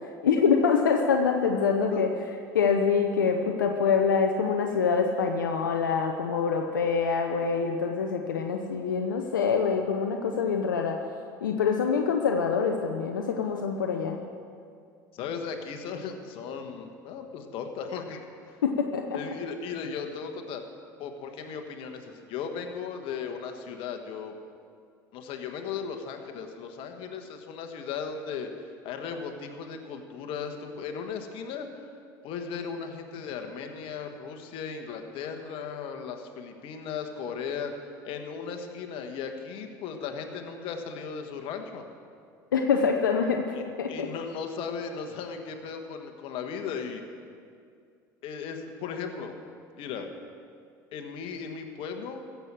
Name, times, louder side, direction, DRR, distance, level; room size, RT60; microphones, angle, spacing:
voice 1, 0.2-2.1 2.5-11.0 11.4-14.2 18.6-19.2 42.5-44.1, left 6 dB, 90° left, 3 dB, 0.7 m, -25 dB
voice 2, 15.1-18.3 19.1-20.6 21.0-24.3 25.1-28.5 28.8-31.7 32.2-37.7 38.0-41.9 43.5-43.6 43.9-47.0 48.2-49.4 49.8-50.1 50.9-52.2, left 6 dB, 60° left, 5 dB, 1.5 m, -36 dB
15.0 x 7.2 x 7.5 m, 2.3 s
hypercardioid pair, 75°, 10 cm